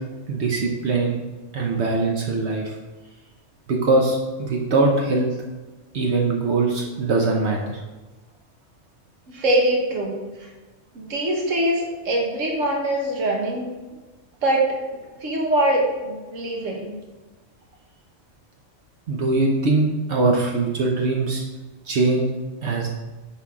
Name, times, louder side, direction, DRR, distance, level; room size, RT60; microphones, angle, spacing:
voice 1, 0.3-1.2 1.5-2.8 3.7-5.3 5.9-7.8 19.1-21.4 21.9-22.3 22.6-22.9, right 3 dB, 65° right, 0 dB, 1.0 m, -22 dB
voice 2, 9.3-10.2 10.9-13.7 14.4-14.8 15.2-16.9, right 1 dB, 90° right, -1 dB, 1.6 m, -23 dB
10.0 x 3.9 x 3.6 m, 1.2 s
omnidirectional pair, 1.3 m